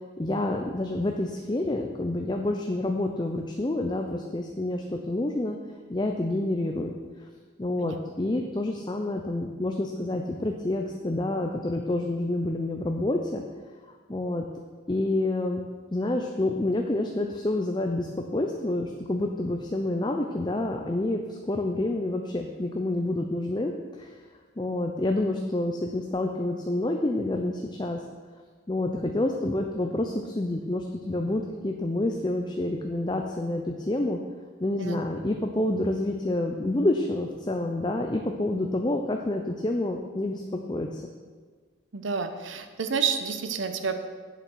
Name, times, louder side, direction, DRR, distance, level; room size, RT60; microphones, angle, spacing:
voice 1, 0.2-5.6 5.9-6.9 7.6-13.4 14.1-14.5 14.9-15.6 15.9-23.7 24.0-24.1 24.6-28.0 28.7-34.2 34.6-41.0, left 1 dB, 20° left, 3 dB, 0.5 m, -28 dB
voice 2, 41.9-44.0, right 5 dB, 80° right, 8 dB, 0.8 m, -29 dB
8.3 x 7.2 x 6.2 m, 1.5 s
head